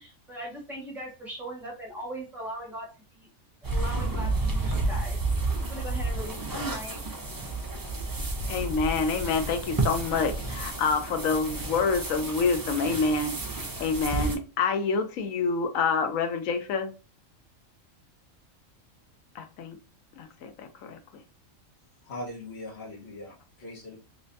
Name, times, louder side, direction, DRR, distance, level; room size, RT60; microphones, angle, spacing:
voice 1, 0.0-3.3 3.6-5.2 5.6-7.0, equal, ahead, 1.4 m, -39 dB
sound 1, 3.6-14.4, right 3 dB, 25° right, 0.4 m, -31 dB
voice 2, 8.5-13.4 13.8-16.9 19.4-19.8 20.2-21.0, left 4 dB, 90° left, 1.1 m, -27 dB
voice 3, 22.0-24.0, left 1 dB, 55° left, 1.5 m, -40 dB
3.2 x 3.2 x 2.6 m
omnidirectional pair, 1.4 m